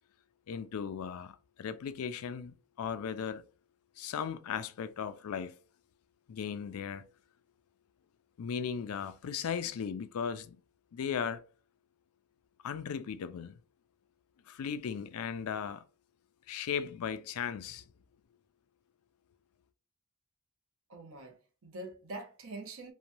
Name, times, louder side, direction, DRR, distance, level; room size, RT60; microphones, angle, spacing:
voice 1, 0.5-3.4 4.0-5.6 6.3-7.1 8.4-10.6 10.9-11.4 12.6-13.6 14.5-15.8 16.5-17.8, left 7 dB, 70° left, 0.4 m, -37 dB
voice 2, 20.9-22.9, right 2 dB, 65° right, 0.8 m, -44 dB
3.0 x 2.2 x 2.6 m
head